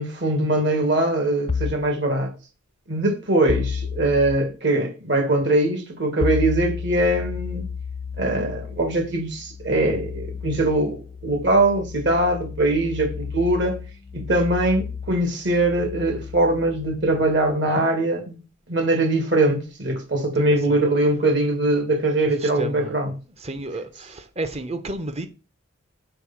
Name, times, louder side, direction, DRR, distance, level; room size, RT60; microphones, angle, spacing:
voice 1, 0.0-2.3 2.9-7.7 8.2-13.8 14.1-18.4 18.7-23.1, right 2 dB, 55° right, 2.0 m, -22 dB
sound 1, 1.5-1.9 3.5-4.4 6.2-17.6, left 6 dB, 30° left, 0.4 m, -32 dB
voice 2, 20.3-20.8 22.2-22.9 23.4-25.3, right 1 dB, 30° right, 0.8 m, -32 dB
6.8 x 4.4 x 5.9 m
head